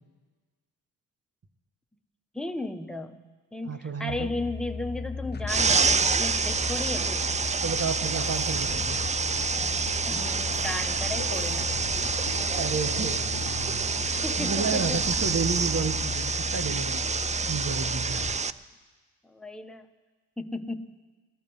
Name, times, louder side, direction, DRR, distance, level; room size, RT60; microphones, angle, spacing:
voice 1, 2.3-3.2 3.5-7.3 10.0-11.8 14.2-15.0 18.3-18.6 19.2-19.9 20.4-20.9, left 2 dB, ahead, 7 dB, 1.0 m, -35 dB
voice 2, 3.6-4.3 7.6-9.0 12.6-17.0 17.5-18.2, right 5 dB, 35° right, 9 dB, 1.5 m, -31 dB
sound 1, 4.1-18.4, left 5 dB, 25° left, 0.7 m, -36 dB
sound 2, 5.5-18.5, right 5 dB, 20° right, 0.4 m, -28 dB
sound 3, 5.5-16.1, right 2 dB, 55° right, 3.5 m, -41 dB
18.5 x 13.5 x 5.5 m, 1.4 s
cardioid pair, 65°, 43 cm